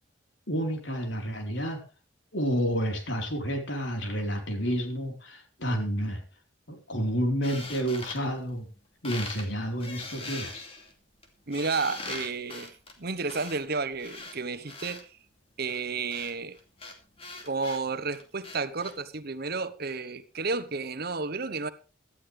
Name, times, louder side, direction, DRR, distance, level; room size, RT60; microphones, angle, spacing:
voice 1, 0.5-1.8 2.3-6.2 6.7-8.7 9.0-10.6, equal, 65° left, 4.2 m, -30 dB
sound 1, 7.4-8.8 9.0-9.5 9.8-15.0 15.7-18.9, left 3 dB, 30° left, 2.7 m, -42 dB
voice 2, 11.5-15.1 15.6-16.6 17.4-21.7, right 4 dB, 55° right, 1.1 m, -32 dB
18.0 x 12.5 x 3.4 m
head